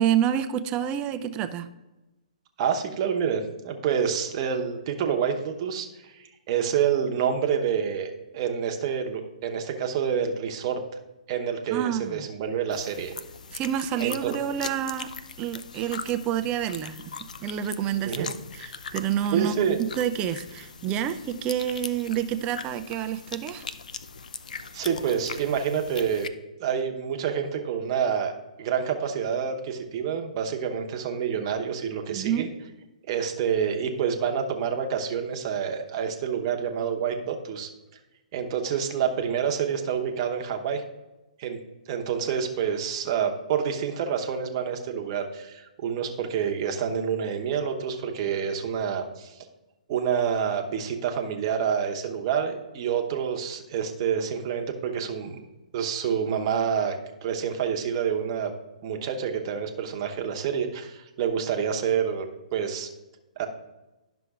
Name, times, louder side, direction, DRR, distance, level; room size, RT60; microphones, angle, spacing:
voice 1, 0.0-1.7 11.7-12.3 13.5-15.1 15.4-17.1 17.4-23.7 32.1-32.5, right 10 dB, 25° right, 10 dB, 0.4 m, -28 dB
voice 2, 2.6-8.1 8.3-10.8 11.3-13.1 14.0-14.3 18.0-18.3 19.3-19.8 24.7-26.3 26.6-28.3 28.6-32.5 33.1-37.7 38.3-40.8 41.4-41.6 41.9-49.4 49.9-55.4 55.7-57.0 57.2-58.5 58.8-62.9 63.4-63.5, right 7 dB, 40° right, 4 dB, 0.9 m, -28 dB
sound 1, 12.7-26.3, left 5 dB, 75° left, 0.4 m, -40 dB
11.0 x 6.0 x 2.4 m, 1.0 s
hypercardioid pair, 135°, 4 cm